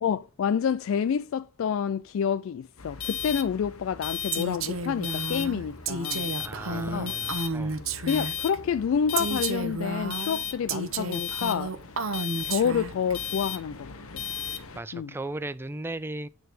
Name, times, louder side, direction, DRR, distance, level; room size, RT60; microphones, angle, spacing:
voice 1, 0.0-6.3 6.7-7.1 8.1-11.8 12.4-14.2 14.9-15.1, left 7 dB, 65° left, 0.3 m, -28 dB
sound 1, 2.8-14.8, left 8 dB, 80° left, 1.1 m, -36 dB
Female speech woman speaking, 4.3-8.6 9.2-13.1, right 3 dB, 65° right, 0.8 m, -32 dB
voice 2, 6.4-7.8 14.7-16.3, right 2 dB, 10° right, 0.4 m, -36 dB
9.3 x 4.0 x 6.6 m
head